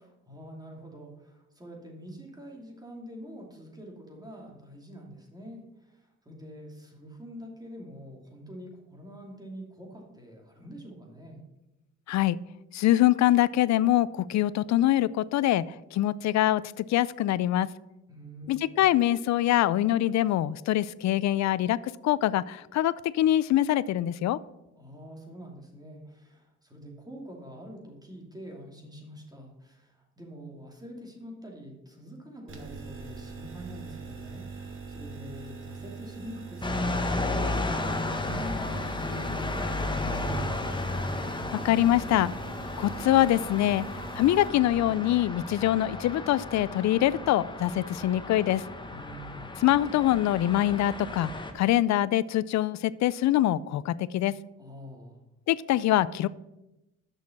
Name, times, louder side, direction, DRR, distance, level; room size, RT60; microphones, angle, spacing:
voice 1, 0.0-11.4 18.1-18.7 24.7-40.9 48.9-49.5 54.6-55.2, equal, 15° right, 0 dB, 2.6 m, -45 dB
voice 2, 12.7-15.6 15.9-17.7 18.5-21.8 22.0-24.4 41.6-42.3 42.8-43.9 44.2-48.6 49.6-54.3 55.5-56.3, left 13 dB, 65° left, 19 dB, 0.5 m, -24 dB
sound 1, 32.5-44.5, right 5 dB, 45° right, 1.4 m, -42 dB
sound 2, 36.6-51.5, left 2 dB, 15° left, 1.2 m, -33 dB
6.5 x 6.4 x 7.2 m, 0.95 s
cardioid pair, 90°, 30 cm